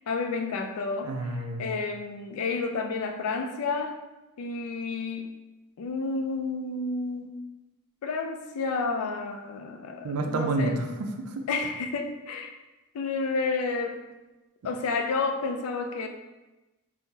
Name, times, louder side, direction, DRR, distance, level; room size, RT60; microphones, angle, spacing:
voice 1, 0.1-1.1 1.6-4.0 4.4-5.3 5.8-7.4 8.0-10.9 11.5-12.5 12.9-14.1 14.6-16.1, left 4 dB, 75° left, 5 dB, 0.3 m, -30 dB
voice 2, 1.0-1.7 10.0-11.4, right 2 dB, 75° right, 4 dB, 0.4 m, -29 dB
3.7 x 2.0 x 2.7 m, 1.1 s
head